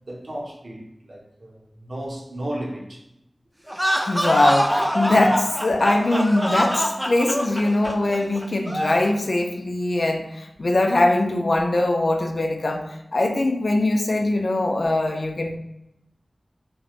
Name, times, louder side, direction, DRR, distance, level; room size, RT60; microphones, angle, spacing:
voice 1, 0.1-3.1 5.1-5.3 5.7-5.8 7.8-8.0, right 1 dB, 65° right, 0.6 m, -34 dB
sound 1, 3.7-9.1, equal, 5° right, 0.3 m, -24 dB
voice 2, 4.1-5.4 5.6-12.8 13.1-15.6, left 2 dB, 70° left, 0.3 m, -21 dB
2.9 x 2.1 x 2.4 m
wide cardioid pair, 60°, 0 cm